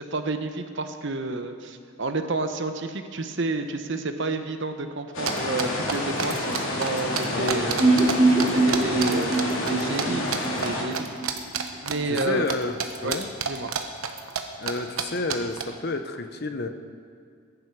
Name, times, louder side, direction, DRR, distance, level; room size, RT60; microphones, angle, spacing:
voice 1, 0.0-7.9 8.4-10.2 10.6-11.1 11.8-12.5 13.0-13.2 13.5-13.7, right 2 dB, 55° right, 7 dB, 0.9 m, -30 dB
sound 1, 5.1-10.8, left 1 dB, 65° left, 2.8 m, -29 dB
sound 2, 5.3-8.1 8.4-10.0 10.3-10.7 10.9-12.5 12.8-14.4 14.7-14.8 15.0-15.1 15.3-15.6, right 7 dB, 75° right, 1.2 m, -28 dB
voice 2, 7.3-7.8 8.9-9.2 12.1-12.7 13.0-13.3 14.6-16.7, left 2 dB, 45° left, 8 dB, 0.8 m, -30 dB
sound 3, 7.8-11.7 11.9-12.0 12.3-12.4, right 2 dB, 25° right, 1.5 m, -23 dB
20.5 x 11.0 x 4.7 m, 2.1 s
head